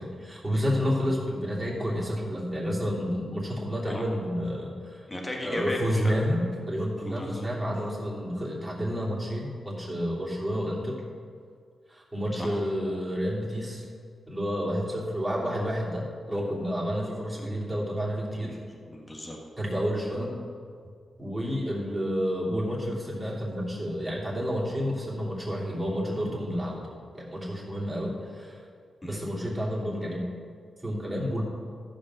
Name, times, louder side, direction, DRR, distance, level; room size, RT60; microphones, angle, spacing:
voice 1, 0.0-5.0 5.4-11.0 11.9-13.8 14.3-18.6 19.6-20.4 21.2-26.8 27.1-28.6 29.1-30.2 30.8-31.4, equal, 15° right, -5 dB, 3.1 m, -30 dB
voice 2, 5.1-6.2 7.0-7.5 12.4-12.5 17.4-17.5 18.4-19.4 29.0-29.2, left 1 dB, 20° left, 0 dB, 1.5 m, -36 dB
14.0 x 5.3 x 6.3 m, 2.1 s
cardioid pair, 85°, 0 cm